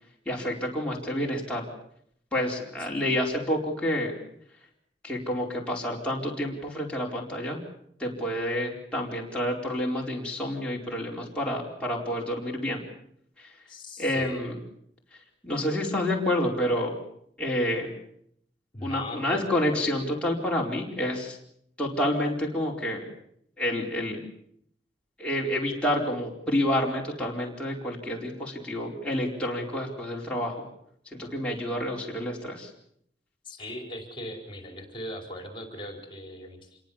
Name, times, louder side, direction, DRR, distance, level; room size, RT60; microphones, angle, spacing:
voice 1, 0.3-1.6 2.3-4.1 5.0-7.6 8.0-12.8 13.4-13.5 14.0-14.6 15.4-16.9 17.4-17.9 18.8-21.4 21.8-23.1 23.6-24.2 25.2-30.6 31.1-32.7, left 1 dB, 5° left, -3 dB, 4.6 m, -29 dB
voice 2, 13.7-14.5 18.7-19.5 33.4-36.8, left 1 dB, 30° left, 4 dB, 4.8 m, -39 dB
27.5 x 22.5 x 7.3 m, 0.70 s
head